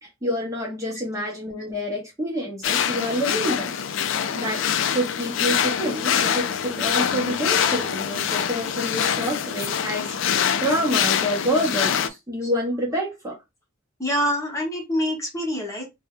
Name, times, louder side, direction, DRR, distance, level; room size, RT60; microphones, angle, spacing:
voice 1, 0.0-3.7 4.4-4.6 4.9-13.4, equal, 15° right, 0.7 m, -27 dB
sound 1, 2.6-12.1, left 8 dB, 65° left, 0.3 m, -24 dB
voice 2, 14.0-15.9, equal, 15° left, 0.9 m, -26 dB
2.6 x 2.2 x 3.5 m
head